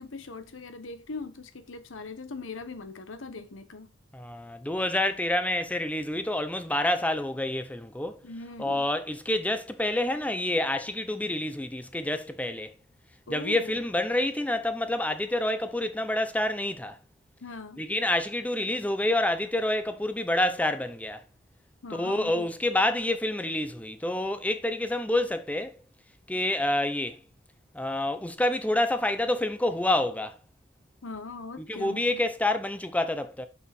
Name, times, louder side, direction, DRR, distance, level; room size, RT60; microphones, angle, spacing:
voice 1, 0.0-3.9 8.2-8.9 13.3-13.8 17.4-17.8 21.8-22.5 31.0-32.2, left 3 dB, 70° left, 1.0 m, -40 dB
voice 2, 4.1-8.2 8.6-12.7 13.3-17.0 17.8-21.2 21.9-25.8 26.3-27.2 27.7-30.4 31.6-33.5, left 1 dB, 5° left, 0.7 m, -28 dB
6.5 x 5.6 x 4.2 m
head